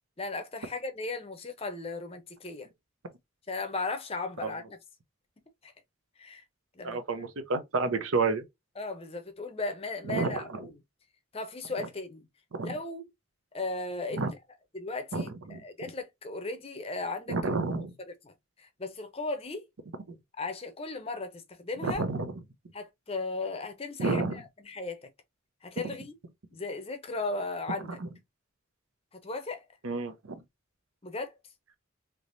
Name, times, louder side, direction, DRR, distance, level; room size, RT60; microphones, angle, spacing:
voice 1, 0.2-2.7 3.5-4.8 5.6-5.7 6.2-6.4 6.8-7.0 8.8-10.7 11.3-12.3 12.6-13.1 13.5-14.3 14.7-17.4 18.2-18.3 18.6-19.6 20.4-22.0 22.7-25.1 25.6-26.1 26.5-28.0 29.1-29.6 31.0-31.3, left 3 dB, 30° left, 0.6 m, -36 dB
voice 2, 6.8-8.4 10.1-10.6 11.8-11.9 12.5-12.7 14.1-14.3 15.1-15.6 17.3-17.9 21.8-22.3 24.0-24.4 25.8-25.9 28.0-28.1 29.8-30.4, right 3 dB, 80° right, 0.7 m, -30 dB
3.5 x 3.0 x 2.6 m
head